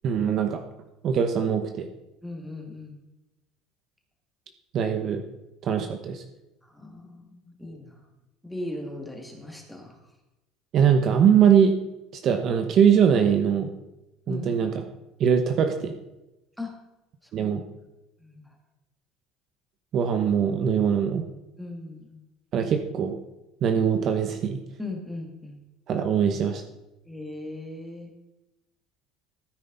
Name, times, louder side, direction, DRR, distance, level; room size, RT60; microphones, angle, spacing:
voice 1, 0.0-0.6 1.0-1.9 4.7-5.2 5.6-6.2 10.7-11.7 12.2-13.7 14.3-14.8 15.2-15.9 17.3-17.6 19.9-21.2 22.5-23.2 23.6-24.6 25.9-26.6, right 7 dB, 40° right, 6 dB, 1.0 m, -22 dB
voice 2, 2.2-3.0 6.6-8.0 8.4-10.0 14.3-14.6 16.6-16.7 17.2-17.5 18.2-18.6 21.6-22.2 24.8-25.6 27.1-28.1, left 2 dB, ahead, 1 dB, 2.2 m, -38 dB
14.5 x 9.3 x 4.0 m, 0.98 s
cardioid pair, 155°, 0 cm